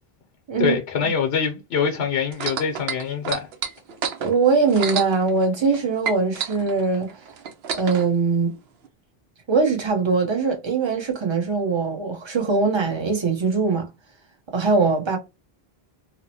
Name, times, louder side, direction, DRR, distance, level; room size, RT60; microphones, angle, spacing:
voice 1, 0.6-3.5, left 6 dB, 85° left, 0.9 m, -24 dB
sound 1, 2.3-5.8 6.0-8.1 8.8-8.9, right 7 dB, 75° right, 0.8 m, -29 dB
voice 2, 4.2-7.1 7.7-8.5 9.5-13.9 14.5-15.2, right 4 dB, 30° right, 0.6 m, -21 dB
2.8 x 2.0 x 2.7 m
omnidirectional pair, 1.0 m